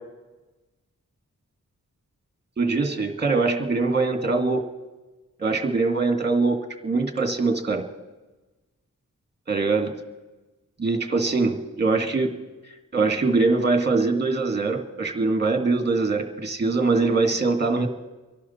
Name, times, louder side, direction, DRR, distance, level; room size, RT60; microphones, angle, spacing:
voice 1, 2.6-4.6 5.4-6.6 6.8-7.9 9.5-9.9 10.8-12.3 12.9-17.9, right 3 dB, 30° right, 5 dB, 1.9 m, -22 dB
29.0 x 11.5 x 4.3 m, 1.2 s
wide cardioid pair, 100°, 33 cm